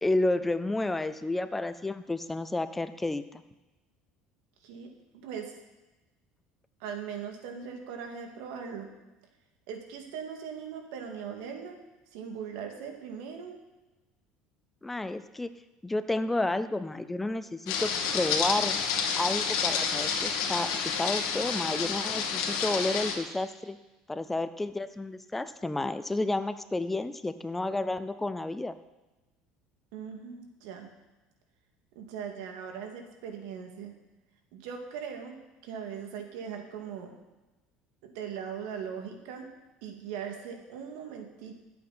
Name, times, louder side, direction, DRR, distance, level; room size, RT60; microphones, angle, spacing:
voice 1, 0.0-3.4 14.8-15.5 15.8-18.8 19.2-23.8 24.1-28.8, left 2 dB, 5° left, 12 dB, 0.4 m, -31 dB
voice 2, 4.6-5.5 6.8-8.9 9.7-11.8 12.1-13.6 29.9-30.9 32.0-33.9 34.5-35.4 35.6-37.1 38.0-39.5 39.8-41.6, right 7 dB, 85° right, 3 dB, 2.3 m, -40 dB
sound 1, 17.7-23.2, left 6 dB, 75° left, 2.0 m, -29 dB
20.5 x 8.5 x 4.3 m, 1.1 s
cardioid pair, 170°, 2 cm